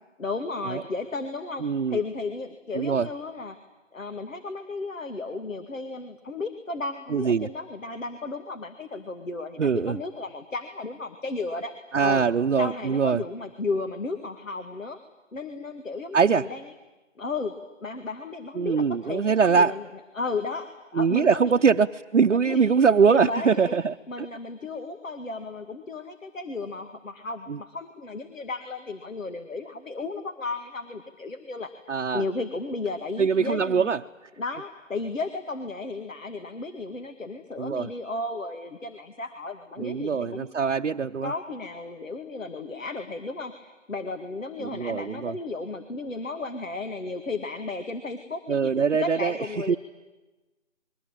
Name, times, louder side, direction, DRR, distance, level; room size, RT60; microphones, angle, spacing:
voice 1, 0.2-3.6 3.9-11.7 12.0-12.2 12.6-15.0 15.3-16.7 17.2-17.5 17.8-20.7 20.9-21.6 22.3-22.7 23.1-31.7 32.1-33.9 34.4-40.5 41.2-48.7 49.0-49.8, left 3 dB, 90° left, 8 dB, 2.2 m, -34 dB
voice 2, 1.6-2.0 2.7-3.1 7.1-7.5 9.6-10.0 11.9-13.2 16.1-16.5 18.6-19.8 21.0-23.9 31.9-32.2 33.2-34.0 37.6-37.9 39.8-41.3 44.6-45.3 48.5-49.3 49.7-49.8, right 6 dB, 70° right, 3 dB, 0.8 m, -22 dB
26.5 x 23.0 x 9.0 m, 1.1 s
hypercardioid pair, 175°, 38 cm